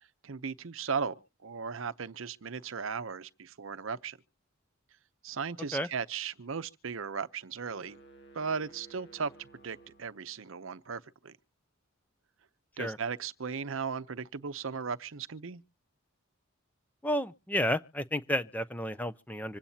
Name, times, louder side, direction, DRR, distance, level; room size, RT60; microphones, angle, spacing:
voice 1, 0.2-4.2 5.2-8.0 8.3-9.3 9.6-11.3 12.8-15.6, right 6 dB, 70° right, 0.7 m, -36 dB
sound 1, 7.7-10.7, right 3 dB, 55° left, 1.5 m, -56 dB
voice 2, 17.0-19.6, equal, 10° left, 0.5 m, -31 dB
25.5 x 8.8 x 2.8 m
head